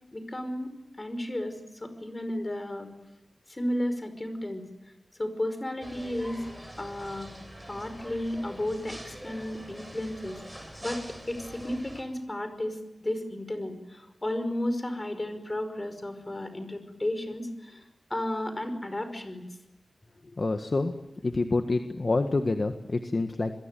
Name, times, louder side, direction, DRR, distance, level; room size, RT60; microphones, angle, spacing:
voice 1, 0.1-2.9 3.5-4.6 5.2-6.5 6.8-7.3 7.7-10.4 10.8-17.8 18.1-19.4, left 1 dB, 25° left, 9 dB, 5.3 m, -33 dB
sound 1, 5.8-12.0, equal, 5° right, 7.2 m, -44 dB
voice 2, 20.4-20.9 21.2-23.5, left 3 dB, 45° left, 6 dB, 1.7 m, -27 dB
27.0 x 22.0 x 9.2 m, 0.94 s
wide cardioid pair, 90°, 0 cm